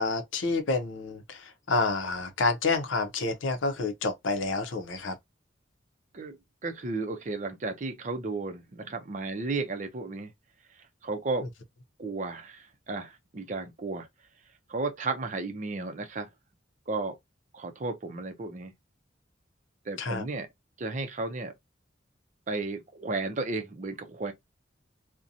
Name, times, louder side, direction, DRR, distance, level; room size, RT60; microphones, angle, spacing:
voice 1, 0.0-5.2 20.0-20.2, left 3 dB, 90° left, 0.6 m, -29 dB
voice 2, 6.6-10.3 11.0-11.5 12.0-14.1 14.7-16.3 16.9-17.2 17.5-18.7 19.9-20.5 20.8-21.5 22.5-24.3, right 3 dB, 40° right, 0.5 m, -33 dB
2.7 x 2.1 x 2.4 m
head